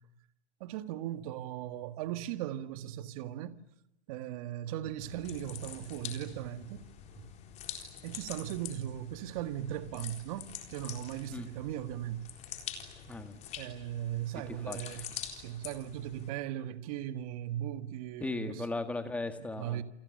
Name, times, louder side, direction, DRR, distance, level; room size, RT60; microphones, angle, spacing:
voice 1, 0.6-3.6 4.1-6.8 7.1-7.3 8.0-12.3 13.6-15.1 15.3-18.7 19.4-19.8, right 12 dB, 30° right, 1.8 m, -38 dB
sound 1, 5.0-16.3, left 9 dB, 20° left, 4.0 m, -46 dB
voice 2, 13.1-13.4 14.7-15.1 18.2-19.8, left 2 dB, 5° left, 1.8 m, -37 dB
29.0 x 29.0 x 6.8 m
hypercardioid pair, 150°, 33 cm